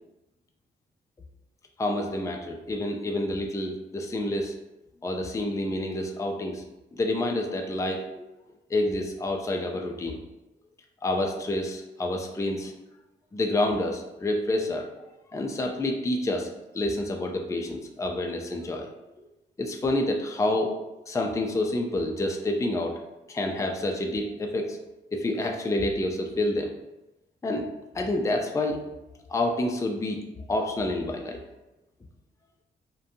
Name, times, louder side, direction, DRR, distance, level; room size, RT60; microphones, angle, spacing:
voice 1, 1.8-4.5 5.0-6.6 6.9-8.2 8.7-10.2 11.0-12.7 13.3-14.8 15.3-16.5 16.7-18.9 19.6-20.7 21.1-22.9 23.3-24.8 25.1-26.7 27.4-27.7 27.9-28.8 29.3-30.2 30.5-31.4, left 1 dB, 15° left, 2 dB, 0.4 m, -28 dB
2.5 x 2.2 x 2.6 m, 0.98 s
supercardioid pair, 45°, 20 cm